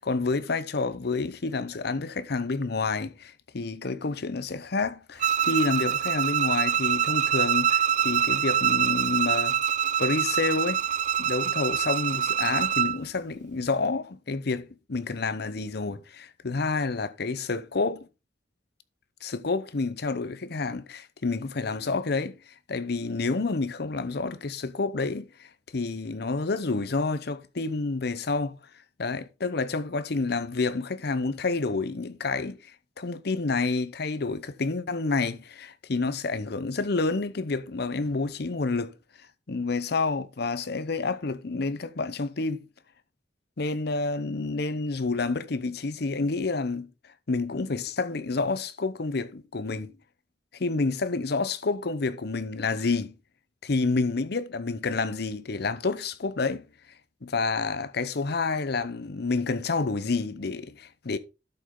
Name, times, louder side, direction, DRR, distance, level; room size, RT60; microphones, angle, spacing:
voice 1, 0.0-9.6 10.0-10.8 11.2-18.1 19.2-22.4 22.7-25.5 25.7-28.6 29.0-32.6 33.0-38.9 39.5-42.6 43.6-46.9 47.3-49.9 50.6-53.1 53.6-56.6 57.2-61.2, left 3 dB, 60° left, 0.7 m, -29 dB
Bowed string instrument, 5.2-13.0, right 9 dB, 45° right, 0.4 m, -25 dB
12.0 x 5.4 x 3.7 m
head